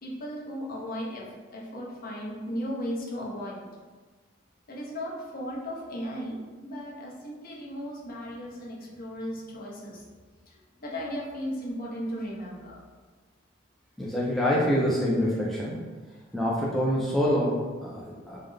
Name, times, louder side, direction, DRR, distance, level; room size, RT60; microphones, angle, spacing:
voice 1, 0.0-3.7 4.7-6.4 6.6-10.0 10.5-12.8 18.0-18.3, equal, 45° left, -3 dB, 0.7 m, -36 dB
voice 2, 14.0-15.8 16.3-18.4, equal, ahead, -6 dB, 0.4 m, -26 dB
3.6 x 2.1 x 3.3 m, 1.4 s
head